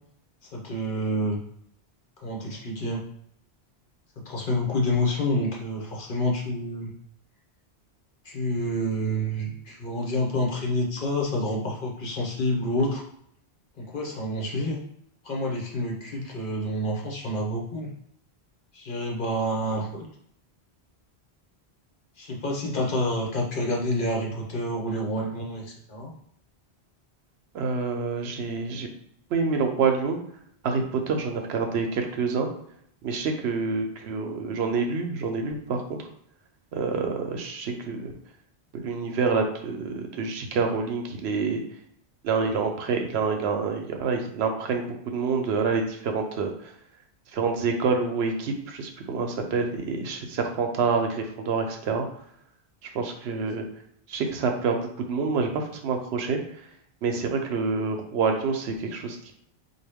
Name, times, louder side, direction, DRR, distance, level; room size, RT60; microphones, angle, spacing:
voice 1, 0.5-1.4 2.2-3.0 4.2-6.9 8.2-13.0 13.8-14.8 15.2-17.9 18.7-20.1 22.2-26.1, left 1 dB, 55° left, -1 dB, 1.0 m, -28 dB
voice 2, 27.5-28.9 29.3-30.2 30.6-32.5 33.0-36.0 36.7-38.1 38.7-41.6 42.2-46.5 47.3-52.1 52.8-53.6 54.1-56.4 57.0-59.3, right 4 dB, 80° right, 4 dB, 0.9 m, -27 dB
4.0 x 2.2 x 3.5 m, 0.69 s
omnidirectional pair, 1.1 m